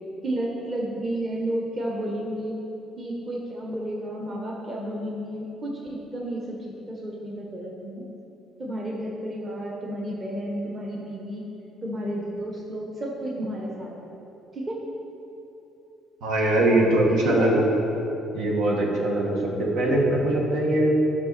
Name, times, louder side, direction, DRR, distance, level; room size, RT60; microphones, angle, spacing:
voice 1, 0.2-2.6 3.0-8.0 8.6-11.5 11.8-13.9 14.5-14.8 16.6-17.8, right 1 dB, 25° right, -2 dB, 1.1 m, -31 dB
voice 2, 16.2-17.6 18.3-20.9, right 1 dB, 80° right, -2 dB, 1.7 m, -22 dB
13.0 x 5.9 x 4.2 m, 2.9 s
cardioid pair, 175°, 0 cm